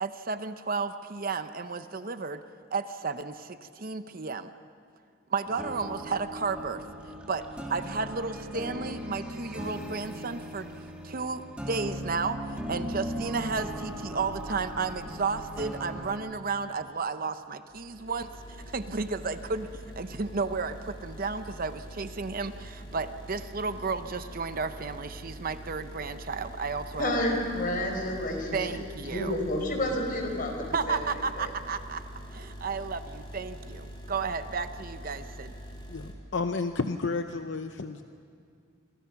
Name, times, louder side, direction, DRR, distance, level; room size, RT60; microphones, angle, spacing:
voice 1, 0.0-2.4 2.7-4.5 5.3-6.8 7.3-10.7 11.0-12.4 12.7-18.3 18.7-19.7 20.0-27.3 28.5-29.3 30.7-32.0 32.3-35.5, right 4 dB, 45° right, 10 dB, 0.8 m, -33 dB
sound 1, 5.5-16.2, equal, 5° right, 2.1 m, -38 dB
sound 2, 17.7-36.1, equal, 25° left, 2.8 m, -44 dB
voice 2, 27.0-28.7 29.1-31.0 31.4-31.5, left 1 dB, 45° left, 3 dB, 4.4 m, -30 dB
voice 3, 35.9-38.0, left 4 dB, 60° left, 7 dB, 0.7 m, -31 dB
28.5 x 23.5 x 5.9 m, 2.3 s
head